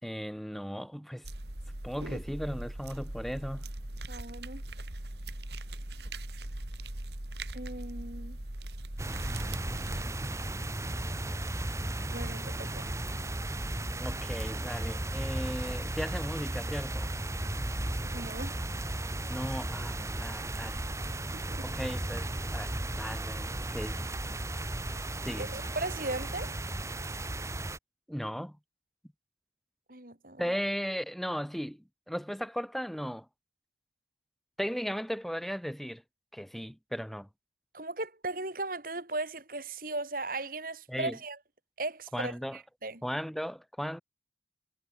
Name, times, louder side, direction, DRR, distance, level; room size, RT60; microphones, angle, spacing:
voice 1, 0.0-1.3 1.8-3.7 14.0-17.1 19.3-20.8 21.6-24.0 25.2-25.5 28.1-28.6 30.4-33.3 34.6-36.0 36.3-37.3 40.9-41.2 42.1-42.6 43.0-44.0, equal, ahead, 2.1 m, -36 dB
sound 1, 1.2-10.1, right 1 dB, 70° right, 2.8 m, -40 dB
voice 2, 4.1-4.6 7.5-8.4 12.1-12.9 18.0-18.6 21.3-21.6 25.4-26.5 29.9-30.4 37.7-41.4 41.8-43.0, right 2 dB, 50° right, 4.1 m, -37 dB
sound 2, 9.0-27.8, right 1 dB, 15° right, 1.3 m, -35 dB
head